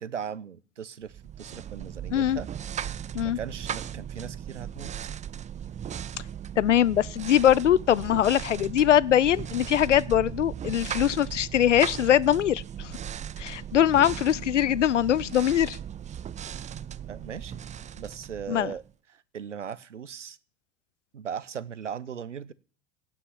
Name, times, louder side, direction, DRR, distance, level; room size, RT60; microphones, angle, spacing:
voice 1, 0.0-2.5 3.2-4.9 17.1-17.6 17.9-18.8 19.1-20.4 21.1-22.5, right 8 dB, 90° right, 0.9 m, -38 dB
sound 1, 1.1-18.9, right 9 dB, 20° right, 0.6 m, -37 dB
voice 2, 6.6-12.9 13.4-15.8 18.5-18.7, left 10 dB, 85° left, 0.6 m, -22 dB
16.5 x 6.1 x 9.9 m
hypercardioid pair, 80°, 35 cm